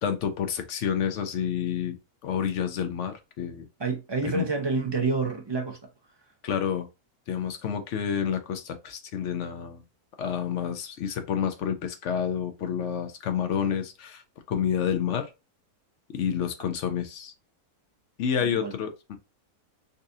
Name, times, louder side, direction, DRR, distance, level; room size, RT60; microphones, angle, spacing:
voice 1, 0.0-2.0 2.2-3.7 4.2-4.5 6.4-6.9 7.3-9.8 10.2-15.3 16.1-17.3 18.2-19.2, left 8 dB, 65° left, 0.8 m, -29 dB
voice 2, 3.8-5.8 18.5-18.7, right 4 dB, 40° right, 0.4 m, -28 dB
4.0 x 2.5 x 2.6 m
omnidirectional pair, 1.6 m